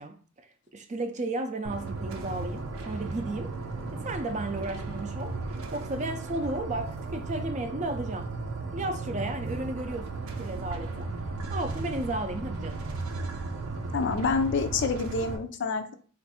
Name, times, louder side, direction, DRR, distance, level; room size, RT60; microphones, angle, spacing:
voice 1, 0.0-3.5 3.9-5.4 5.7-8.4 8.7-11.1 11.5-12.8, right 2 dB, 35° right, 0.5 m, -34 dB
sound 1, 1.6-15.4, right 3 dB, 85° right, 0.6 m, -35 dB
voice 2, 13.9-15.9, left 4 dB, 55° left, 0.5 m, -27 dB
3.5 x 2.5 x 4.0 m
head